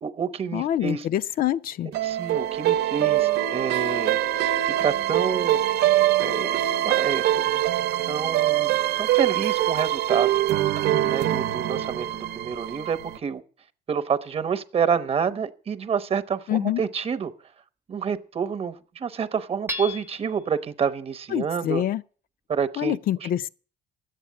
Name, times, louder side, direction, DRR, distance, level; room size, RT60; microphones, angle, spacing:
voice 1, 0.0-1.0 1.8-4.2 4.6-5.6 6.2-10.4 11.0-13.4 13.9-17.3 17.9-21.8 22.5-23.3, right 6 dB, 35° right, 1.0 m, -28 dB
voice 2, 0.5-1.9 16.5-16.8 21.3-22.0 22.8-23.5, left 12 dB, 60° left, 0.5 m, -25 dB
sound 1, 1.9-13.2, right 13 dB, 75° right, 0.8 m, -23 dB
Hammer / Chink clink, 19.7-20.5, left 1 dB, 10° right, 0.7 m, -34 dB
11.0 x 8.2 x 9.4 m
cardioid pair, 110°, 17 cm